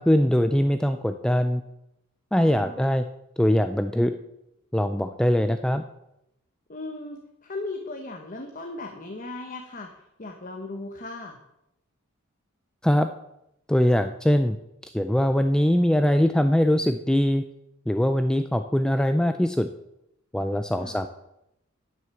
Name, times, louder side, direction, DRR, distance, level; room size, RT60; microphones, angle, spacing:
voice 1, 0.0-1.6 2.3-3.1 3.4-4.1 4.7-5.8 12.8-13.1 13.7-14.6 14.8-17.4 17.9-19.7 20.3-21.1, equal, 5° left, 8 dB, 0.3 m, -22 dB
voice 2, 2.3-2.9 6.7-11.4 20.8-21.1, left 2 dB, 40° left, 4 dB, 1.0 m, -37 dB
10.5 x 6.5 x 7.0 m, 0.86 s
head